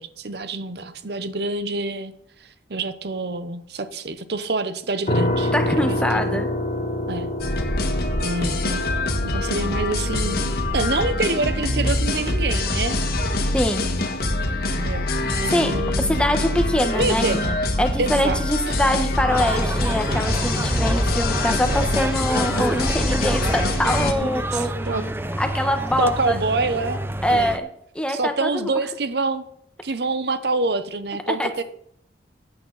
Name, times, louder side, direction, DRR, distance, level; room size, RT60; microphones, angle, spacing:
voice 1, 0.0-2.1 2.7-6.4 7.1-7.3 8.2-8.9 9.2-13.0 14.8-16.3 16.9-17.6 18.0-18.8 24.2-25.0 26.0-27.0 27.3-27.6 28.1-29.4 29.8-31.6, right 3 dB, 65° right, 11 dB, 0.8 m, -27 dB
sound 1, 5.1-17.9, left 1 dB, 40° left, 1.0 m, -30 dB
voice 2, 5.5-6.5 13.5-13.8 15.5-17.2 17.8-24.7 25.4-26.3 27.2-27.7 27.9-28.7 31.3-31.5, left 1 dB, 5° left, 6 dB, 1.2 m, -23 dB
sound 2, 7.4-24.1, left 2 dB, 60° left, 1.6 m, -24 dB
sound 3, 19.3-27.6, right 1 dB, 15° right, 0.6 m, -28 dB
15.5 x 8.8 x 4.0 m, 0.69 s
head